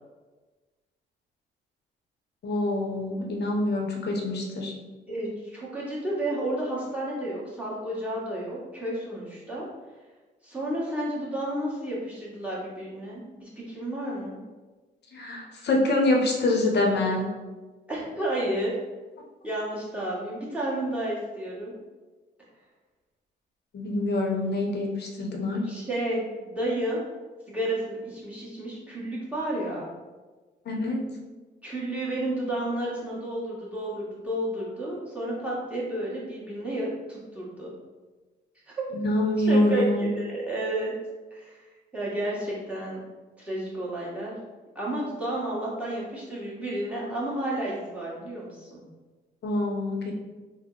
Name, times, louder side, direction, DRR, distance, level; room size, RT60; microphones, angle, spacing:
voice 1, 2.4-4.7 15.1-17.3 23.7-25.7 30.7-31.0 38.9-40.1 49.4-50.1, left 1 dB, 55° left, 1 dB, 0.8 m, -25 dB
voice 2, 5.1-9.7 10.4-14.4 17.9-18.7 19.4-21.7 25.7-27.0 27.5-29.9 31.6-37.7 38.7-38.8 39.5-40.9 41.3-41.7 41.9-43.0 43.4-44.4 44.7-48.8, right 1 dB, 5° right, -7 dB, 1.3 m, -31 dB
3.5 x 2.1 x 3.8 m, 1.3 s
cardioid pair, 90°, 20 cm